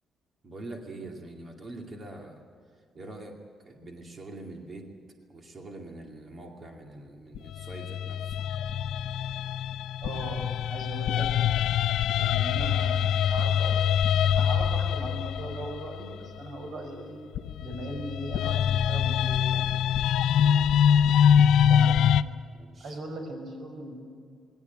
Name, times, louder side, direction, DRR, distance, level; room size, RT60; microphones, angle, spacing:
voice 1, 0.4-2.4 2.9-3.4 3.6-4.9 5.3-8.4 20.4-20.7 22.5-23.0, right 2 dB, 30° right, 2 dB, 2.4 m, -44 dB
sound 1, 7.4-16.5 17.4-22.2, left 8 dB, 75° left, 0.5 m, -24 dB
voice 2, 10.0-11.3 12.2-13.8 14.2-17.2 17.6-19.7 21.7-22.0 22.8-24.0, right 2 dB, 50° right, 3 dB, 5.9 m, -39 dB
21.0 x 17.5 x 9.4 m, 2.1 s
cardioid pair, 170°, 0 cm